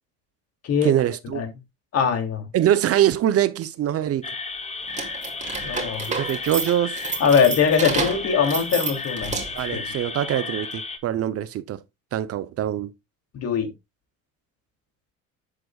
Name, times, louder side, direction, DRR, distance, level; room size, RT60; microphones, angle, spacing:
voice 1, 0.8-1.4 2.5-4.2 6.2-7.1 9.5-11.8 12.1-12.9, right 11 dB, 50° right, 0.8 m, -23 dB
voice 2, 1.9-2.5 5.6-6.2 7.2-9.4 9.7-9.9 13.3-13.7, left 6 dB, 50° left, 2.9 m, -22 dB
sound 1, 4.2-11.0, left 4 dB, 20° left, 1.3 m, -33 dB
sound 2, 4.9-9.7, right 4 dB, 25° right, 2.4 m, -30 dB
10.5 x 7.6 x 2.4 m
cardioid pair, 120°, 31 cm